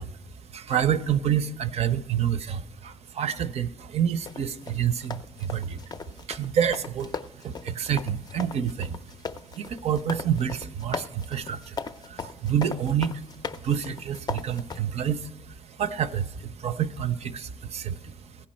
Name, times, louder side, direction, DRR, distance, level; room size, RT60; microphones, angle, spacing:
voice 1, 0.0-18.5, right 9 dB, 60° right, 12 dB, 0.5 m, -29 dB
sound 1, 4.2-14.8, left 5 dB, 30° left, 0.4 m, -38 dB
15.5 x 5.3 x 4.3 m, 1.0 s
cardioid pair, 75°, 12 cm